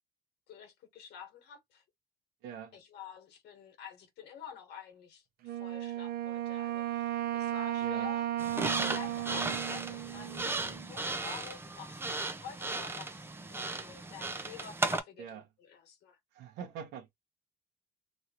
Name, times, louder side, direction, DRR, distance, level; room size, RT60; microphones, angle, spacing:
voice 1, 0.5-1.8 2.7-8.3 8.9-16.2, left 7 dB, 80° left, 1.3 m, -49 dB
voice 2, 2.4-2.8 7.8-8.1 15.2-15.4 16.3-17.1, right 7 dB, 90° right, 1.0 m, -44 dB
Wind instrument woodwind instrument, 5.4-10.9, right 12 dB, 65° right, 0.6 m, -35 dB
sound 1, 8.4-15.0, right 3 dB, 15° right, 0.6 m, -36 dB
3.1 x 2.7 x 2.9 m
cardioid pair, 110°, 17 cm